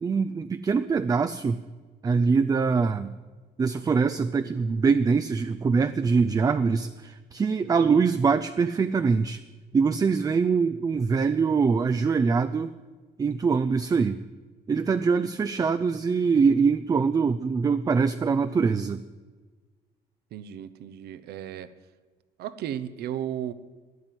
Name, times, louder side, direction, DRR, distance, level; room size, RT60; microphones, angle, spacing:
voice 1, 0.0-1.6 2.0-3.1 3.6-9.4 9.7-12.7 13.2-14.2 14.7-19.0, right 5 dB, 20° right, 11 dB, 0.4 m, -23 dB
voice 2, 20.3-21.7 22.4-23.5, right 10 dB, 70° right, 14 dB, 0.8 m, -34 dB
13.0 x 9.6 x 7.8 m, 1.4 s
cardioid pair, 110°, 17 cm